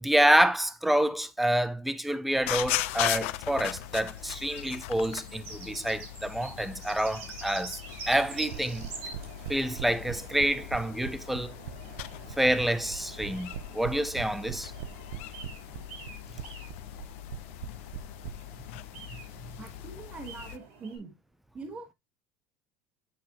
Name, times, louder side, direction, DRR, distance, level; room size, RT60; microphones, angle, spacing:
voice 1, 0.0-7.8 8.1-8.9 9.5-11.5 12.4-14.7, right 1 dB, ahead, 0.5 m, -27 dB
sound 1, 2.4-20.6, left 16 dB, 75° left, 0.6 m, -39 dB
sound 2, 2.8-21.0, right 4 dB, 85° right, 5.8 m, -47 dB
sound 3, 8.5-18.3, right 10 dB, 65° right, 0.6 m, -39 dB
voice 2, 19.6-21.1 21.5-21.9, right 4 dB, 20° right, 1.3 m, -43 dB
8.5 x 6.0 x 2.9 m
cardioid pair, 170°, 7 cm